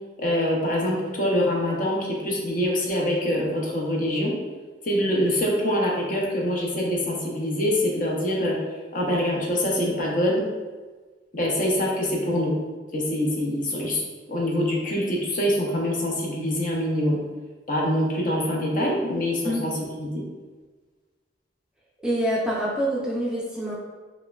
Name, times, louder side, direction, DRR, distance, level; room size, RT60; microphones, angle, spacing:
voice 1, 0.2-4.3 4.8-8.6 8.9-10.4 11.3-12.5 12.9-14.0 14.3-17.2 17.7-19.7 20.0-20.1, left 1 dB, 45° left, -2 dB, 0.6 m, -24 dB
voice 2, 22.0-23.7, equal, 5° right, -6 dB, 0.4 m, -26 dB
4.5 x 2.2 x 2.3 m, 1.4 s
head